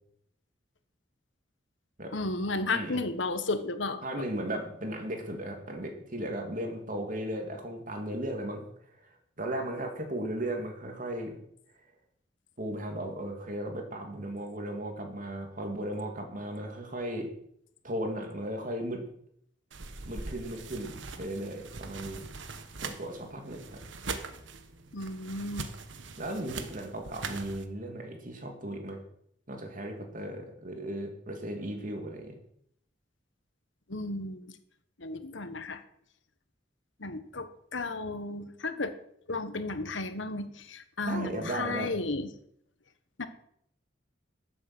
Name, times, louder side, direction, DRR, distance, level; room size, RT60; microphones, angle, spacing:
voice 1, 2.1-4.0 24.9-25.7 33.9-34.4 35.0-35.8 37.0-38.9 39.3-42.3 43.2-43.3, left 2 dB, 85° left, 10 dB, 1.4 m, -33 dB
voice 2, 2.7-3.0 4.0-8.7 9.0-9.1 9.4-11.4 12.6-17.3 17.8-19.1 20.1-22.2 22.8-23.8 26.2-29.0 29.5-32.4 41.0-41.9, right 1 dB, 45° right, 3 dB, 2.9 m, -36 dB
sound 1, 19.7-27.7, right 4 dB, 85° right, 1.3 m, -42 dB
13.0 x 7.8 x 7.9 m, 0.70 s
head